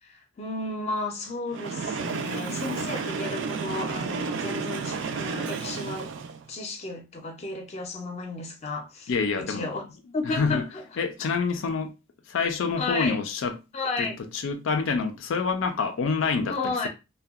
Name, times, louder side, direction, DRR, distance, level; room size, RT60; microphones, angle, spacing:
voice 1, 0.0-6.1 6.5-9.9 10.1-11.0 12.8-13.2 13.7-14.2 16.5-16.9, left 3 dB, 35° left, 0.5 m, -33 dB
Train, 1.5-6.5, right 5 dB, 70° right, 0.3 m, -32 dB
voice 2, 9.1-9.7 10.3-10.6 11.0-11.9 12.3-13.6 14.0-14.1 14.4-16.9, left 5 dB, 90° left, 0.4 m, -27 dB
2.6 x 2.2 x 2.3 m
head